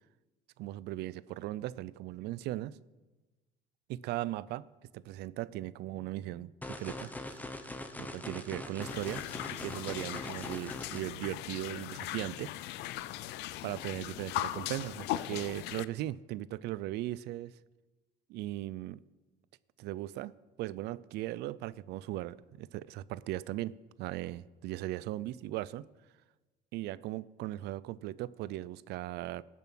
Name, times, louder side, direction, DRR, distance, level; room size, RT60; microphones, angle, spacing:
voice 1, 0.6-2.8 3.9-4.7 4.9-7.4 8.0-12.5 13.6-17.5 18.3-19.0 19.8-23.7 24.0-25.9 26.7-29.4, right 15 dB, 80° right, 20 dB, 0.5 m, -38 dB
sound 1, 6.6-11.0, left 1 dB, 10° left, 1.1 m, -42 dB
sound 2, 8.8-15.8, left 15 dB, 90° left, 0.5 m, -39 dB
18.5 x 7.3 x 6.0 m, 1.2 s
cardioid pair, 110°, 17 cm